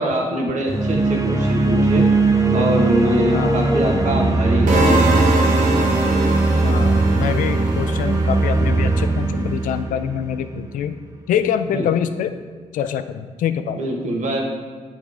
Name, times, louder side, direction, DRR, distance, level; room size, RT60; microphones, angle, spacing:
voice 1, 0.0-2.0 2.5-5.3 11.7-11.9 13.8-14.4, equal, 65° right, 0 dB, 1.4 m, -23 dB
sound 1, 0.7-10.7, right 3 dB, 25° right, 0.9 m, -19 dB
voice 2, 3.3-3.6 6.6-11.0 11.3-12.3 12.7-13.8, left 9 dB, 90° left, 10 dB, 0.4 m, -24 dB
sound 2, 4.7-8.7, right 2 dB, 85° right, 1.0 m, -22 dB
8.6 x 3.5 x 4.9 m, 1.5 s
supercardioid pair, 55°, 13 cm